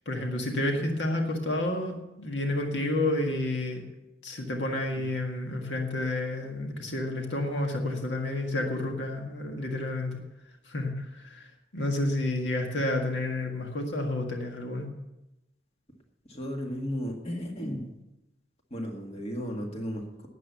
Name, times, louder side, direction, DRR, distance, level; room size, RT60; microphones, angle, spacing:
voice 1, 0.1-3.8 4.2-10.2 10.7-11.4 11.7-14.9, left 1 dB, 80° left, 2 dB, 1.7 m, -30 dB
voice 2, 16.3-17.9 18.7-20.3, equal, 35° left, 2 dB, 1.9 m, -34 dB
12.5 x 8.7 x 7.0 m, 0.95 s
head